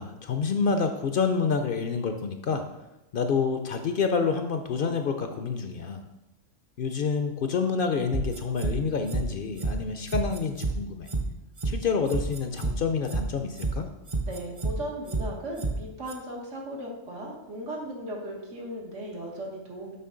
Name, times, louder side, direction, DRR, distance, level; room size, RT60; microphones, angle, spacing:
voice 1, 0.0-2.6 3.1-6.0 6.8-11.1 11.6-13.9, left 5 dB, 60° left, 7 dB, 0.6 m, -28 dB
sound 1, 8.1-8.7 9.1-9.2 9.6-9.7 10.1-10.7 11.1-11.2 11.6-11.7 12.1-12.7 13.1-13.2 13.6-13.7 14.1-14.7 15.1-15.2 15.6-15.7 16.1-16.2, right 3 dB, 35° right, 0.6 m, -29 dB
voice 2, 14.3-20.0, right 1 dB, 85° right, -1 dB, 1.8 m, -37 dB
6.7 x 5.3 x 3.8 m, 0.95 s
omnidirectional pair, 1.2 m